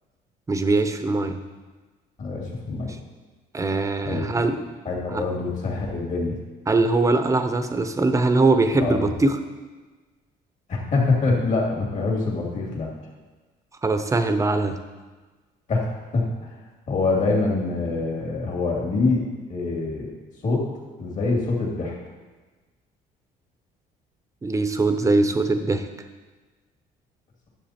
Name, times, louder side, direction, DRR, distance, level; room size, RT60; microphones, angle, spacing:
voice 1, 0.5-1.4 3.5-4.6 5.1-5.2 6.7-9.4 13.8-14.8 24.4-25.9, right 3 dB, 20° right, 8 dB, 0.8 m, -21 dB
voice 2, 2.2-2.9 4.0-4.5 4.8-6.4 8.8-9.0 10.7-12.9 15.7-16.5 16.9-20.1 20.4-20.6 21.0-22.0, left 3 dB, 45° left, -1 dB, 2.6 m, -25 dB
10.0 x 7.4 x 4.3 m, 1.3 s
cardioid pair, 110°, 17 cm